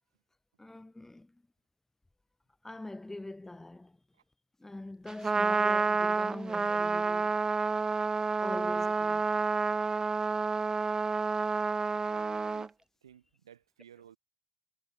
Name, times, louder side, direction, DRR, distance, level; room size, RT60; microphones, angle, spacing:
voice 1, 0.6-1.4 2.6-4.0 4.6-7.4 8.4-9.3, left 2 dB, 15° left, 3.5 m, -43 dB
Trumpet, 5.1-12.7, right 4 dB, 25° right, 0.4 m, -29 dB
voice 2, 11.9-12.7 13.0-14.2, right 9 dB, 85° right, 1.4 m, -56 dB
figure-of-eight pair, 45°, 3 cm